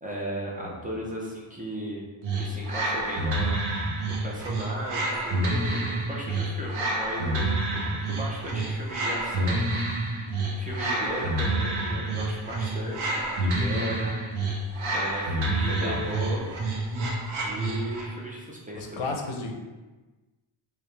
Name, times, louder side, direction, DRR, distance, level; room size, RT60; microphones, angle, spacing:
voice 1, 0.0-2.1 2.3-3.9 4.2-10.1 10.6-14.2 14.9-16.5 17.4-19.1, equal, 15° right, -4 dB, 0.6 m, -36 dB
voice 2, 0.6-1.0 15.6-16.0 18.7-19.5, left 3 dB, 75° left, 2 dB, 0.7 m, -34 dB
sound 1, 2.2-18.2, right 2 dB, 70° right, 0.9 m, -28 dB
4.7 x 2.3 x 3.3 m, 1.2 s
wide cardioid pair, 150°, 49 cm